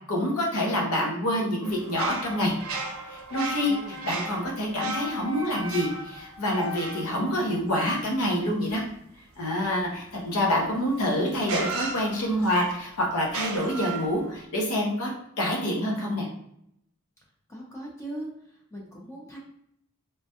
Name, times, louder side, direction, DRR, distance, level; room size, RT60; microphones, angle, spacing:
voice 1, 0.1-2.5 3.1-8.8 9.4-15.1 15.4-16.3, equal, 75° left, -1 dB, 0.8 m, -27 dB
sound 1, 1.6-8.2 10.6-10.7 11.4-12.6 13.2-14.4, right 1 dB, 65° right, 0.5 m, -35 dB
voice 2, 3.7-4.0 17.5-18.3 18.7-19.4, right 1 dB, 15° left, -2 dB, 0.5 m, -39 dB
3.1 x 2.2 x 2.8 m, 0.74 s
head